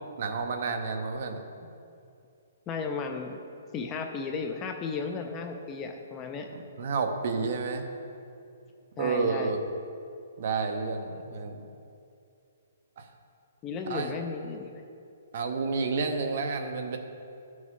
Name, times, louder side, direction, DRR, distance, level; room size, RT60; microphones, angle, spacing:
voice 1, 0.2-1.7 6.5-7.9 9.0-9.6 10.4-11.6 13.0-13.1 13.9-14.1 15.3-17.0, right 4 dB, 40° right, 5 dB, 0.7 m, -30 dB
voice 2, 2.7-3.4 3.7-6.5 9.0-9.5 13.6-14.8, left 5 dB, 15° left, 4 dB, 0.3 m, -34 dB
12.5 x 6.2 x 3.7 m, 2.6 s
hypercardioid pair, 180°, 0 cm